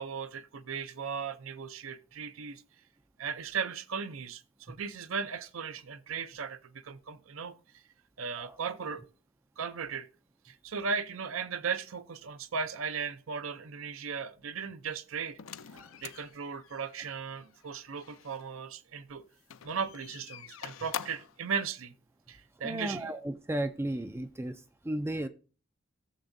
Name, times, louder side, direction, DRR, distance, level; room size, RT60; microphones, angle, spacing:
voice 1, 0.0-2.6 3.2-7.8 8.2-9.0 9.6-10.1 10.4-15.4 16.0-19.2 19.6-21.9 22.3-23.1, right 6 dB, 70° right, 0.6 m, -37 dB
sound 1, 15.4-18.4 19.4-21.4, left 9 dB, 70° left, 0.5 m, -45 dB
voice 2, 22.6-25.3, right 1 dB, 10° right, 0.3 m, -35 dB
16.5 x 7.0 x 2.6 m
head